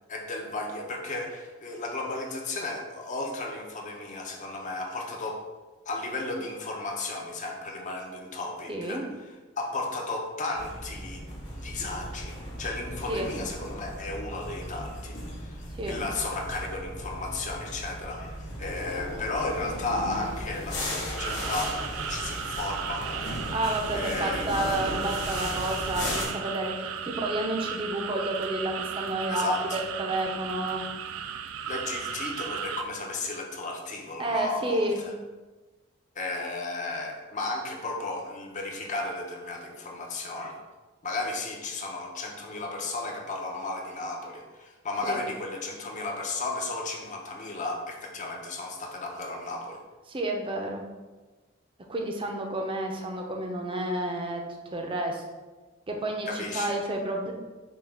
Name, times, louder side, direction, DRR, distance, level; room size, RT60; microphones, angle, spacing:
voice 1, 0.1-5.4 5.9-11.2 11.6-23.1 23.9-24.5 29.3-29.8 31.7-35.1 36.1-40.6 41.0-49.8 56.3-56.8, left 2 dB, 40° left, 2 dB, 0.6 m, -34 dB
voice 2, 8.7-9.0 13.1-13.3 15.8-16.0 23.5-30.9 34.2-35.0 45.1-45.2 50.1-50.8 51.9-55.2 55.9-57.3, right 1 dB, 25° right, 2 dB, 0.5 m, -30 dB
sound 1, 10.5-26.3, left 1 dB, 60° left, 1.2 m, -36 dB
sound 2, 21.2-32.8, right 8 dB, 80° right, 0.3 m, -35 dB
5.6 x 2.3 x 3.5 m, 1.2 s
head